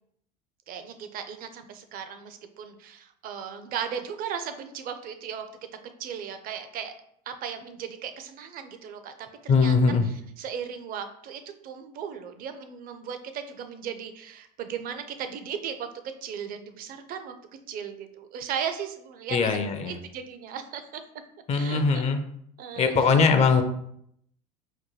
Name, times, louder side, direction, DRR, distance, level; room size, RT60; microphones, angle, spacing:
voice 1, 0.7-5.4 6.0-6.9 7.3-15.9 16.2-17.4 17.7-19.6 19.8-21.0 21.5-22.1 22.6-23.2, right 8 dB, 50° right, 8 dB, 0.5 m, -36 dB
voice 2, 9.5-10.0 19.3-19.9 21.5-22.2 22.8-23.6, left 5 dB, 35° left, 7 dB, 0.4 m, -21 dB
4.4 x 2.2 x 3.0 m, 0.71 s
hypercardioid pair, 90°, 20 cm